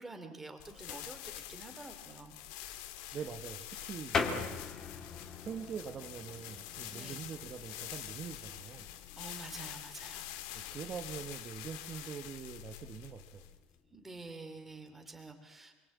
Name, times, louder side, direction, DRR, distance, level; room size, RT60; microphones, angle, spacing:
voice 1, 0.0-2.4 6.9-7.2 9.1-10.3 10.6-10.7 13.9-15.7, right 3 dB, 10° right, 6 dB, 3.0 m, -48 dB
sound 1, 0.6-13.7, left 13 dB, 70° left, 2.2 m, -46 dB
voice 2, 3.1-4.6 5.4-8.9 10.7-13.5, right 7 dB, 25° right, 5 dB, 1.4 m, -44 dB
sound 2, 4.1-14.3, left 5 dB, 20° left, 2.4 m, -43 dB
29.0 x 23.0 x 8.5 m, 1.2 s
cardioid pair, 180°, 2 cm